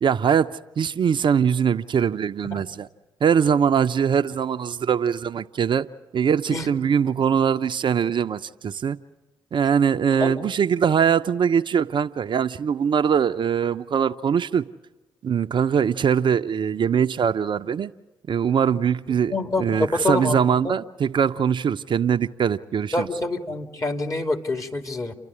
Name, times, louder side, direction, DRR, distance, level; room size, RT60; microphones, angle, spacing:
voice 1, 0.0-2.9 3.2-5.9 6.1-9.0 9.5-14.6 15.2-17.9 18.3-19.3 19.6-23.1, right 7 dB, 50° right, 0.7 m, -22 dB
voice 2, 19.3-20.4 20.6-20.7 22.9-25.1, left 2 dB, 30° left, 2.7 m, -26 dB
30.0 x 12.0 x 9.8 m
hypercardioid pair, 45°, 10 cm